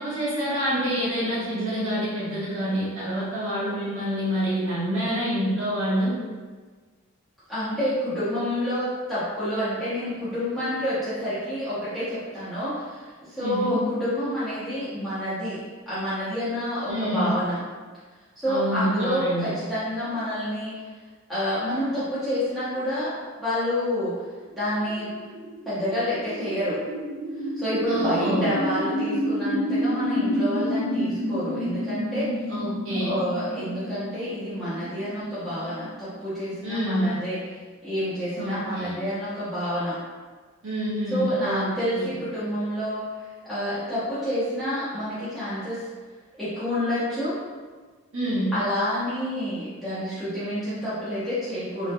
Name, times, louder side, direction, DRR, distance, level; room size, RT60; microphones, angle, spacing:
voice 1, 0.0-6.2 13.4-13.8 16.9-17.4 18.5-19.5 27.9-28.5 32.5-33.1 36.6-37.2 38.4-39.0 40.6-42.1 48.1-48.5, equal, 65° right, -9 dB, 1.4 m, -27 dB
voice 2, 7.5-17.6 18.4-20.7 21.3-24.1 24.6-25.1 25.7-26.8 27.6-32.3 33.0-37.4 37.8-40.0 41.1-43.0 43.4-45.8 46.4-47.3 48.5-51.9, equal, ahead, -15 dB, 0.9 m, -28 dB
sound 1, 24.4-36.5, equal, 45° right, 0.8 m, -30 dB
3.5 x 3.2 x 2.3 m, 1.4 s
head